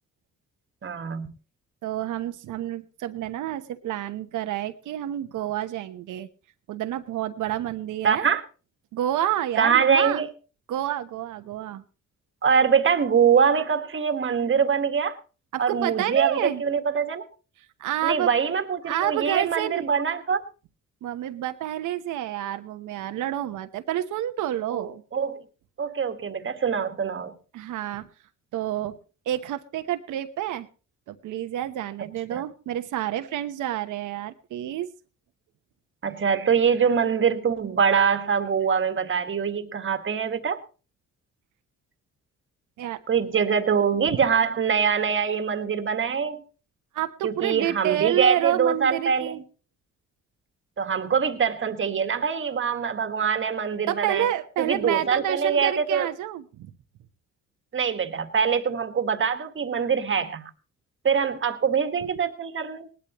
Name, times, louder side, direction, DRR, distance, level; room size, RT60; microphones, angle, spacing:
voice 1, 0.8-1.3 8.0-8.4 9.6-10.3 12.4-15.2 15.6-17.2 18.0-20.4 24.7-25.4 25.8-27.3 32.3-32.4 36.0-40.6 43.1-46.4 47.2-49.4 50.8-54.3 54.6-56.1 57.7-60.5 61.0-62.9, right 6 dB, 40° right, 9 dB, 1.6 m, -24 dB
voice 2, 1.8-6.3 6.7-8.3 8.9-10.2 10.7-11.8 15.5-16.6 17.8-18.3 18.8-19.8 21.0-25.0 27.5-28.1 28.5-29.0 29.3-30.7 31.1-34.9 42.8-43.0 46.9-49.4 53.9-56.7, right 12 dB, 80° right, 8 dB, 1.1 m, -29 dB
19.0 x 12.0 x 3.1 m, 0.34 s
cardioid pair, 90°, 30 cm